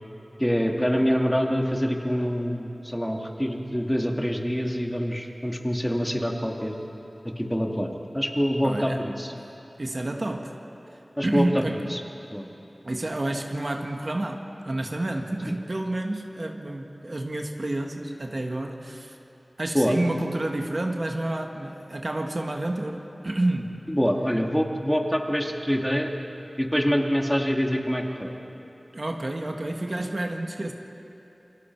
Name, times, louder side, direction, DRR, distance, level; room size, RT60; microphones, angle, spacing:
voice 1, 0.4-6.7 7.4-9.3 11.2-12.0 12.3-12.4 15.5-15.6 19.7-19.9 23.9-26.1 26.6-28.3, equal, 5° left, 1 dB, 2.3 m, -25 dB
voice 2, 8.6-9.0 9.8-10.5 11.2-11.8 12.8-19.2 19.6-23.8 28.9-30.7, right 1 dB, 50° right, 2 dB, 1.7 m, -29 dB
28.5 x 23.5 x 4.7 m, 3.0 s
wide cardioid pair, 45°, 0 cm